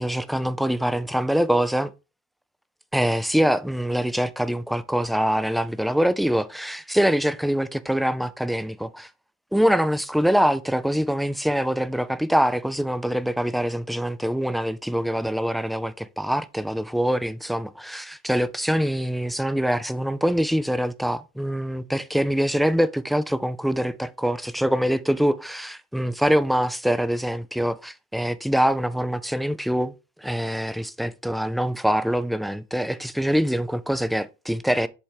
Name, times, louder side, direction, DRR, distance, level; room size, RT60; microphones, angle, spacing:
voice 1, 0.0-1.9 2.9-9.1 9.5-29.9 30.2-34.9, equal, ahead, 0.5 m, -24 dB
7.4 x 3.4 x 4.7 m
cardioid pair, 90°, 30 cm